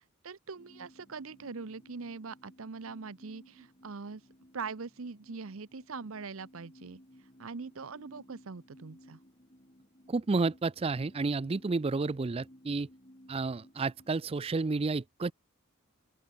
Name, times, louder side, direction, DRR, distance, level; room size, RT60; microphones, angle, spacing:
voice 1, 0.0-4.2 4.5-7.0 7.4-9.2, right 4 dB, 70° right, 0.8 m, -42 dB
sound 1, 0.5-14.7, equal, 30° left, 5.0 m, -58 dB
voice 2, 10.1-12.9 13.3-15.3, right 3 dB, 25° right, 0.4 m, -31 dB
open air
head